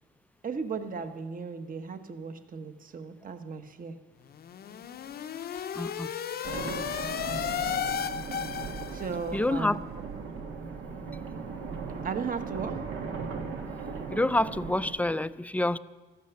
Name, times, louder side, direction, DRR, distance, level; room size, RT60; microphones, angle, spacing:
voice 1, 0.4-4.0 8.9-9.8 12.0-12.8, right 5 dB, 45° right, 8 dB, 1.1 m, -36 dB
sound 1, 4.3-9.3, left 8 dB, 55° left, 0.6 m, -34 dB
voice 2, 5.8-6.1 9.3-9.8 14.1-15.8, left 1 dB, 5° left, 15 dB, 0.4 m, -27 dB
sound 2, 6.4-14.9, right 5 dB, 80° right, 1.6 m, -37 dB
14.0 x 9.4 x 7.0 m, 1.3 s
cardioid pair, 90°, 20 cm